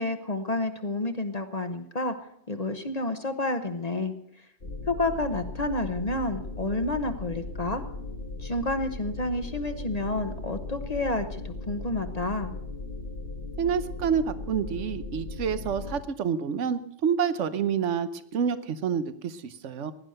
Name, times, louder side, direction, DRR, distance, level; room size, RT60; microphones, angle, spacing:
voice 1, 0.0-2.1 2.5-4.1 4.9-7.8 8.4-12.5, left 2 dB, 35° left, 8 dB, 1.0 m, -30 dB
sound 1, 4.6-16.0, left 3 dB, 55° left, 1.6 m, -37 dB
voice 2, 13.6-19.9, right 7 dB, 70° right, 13 dB, 1.2 m, -28 dB
17.0 x 11.0 x 6.5 m, 0.74 s
omnidirectional pair, 1.3 m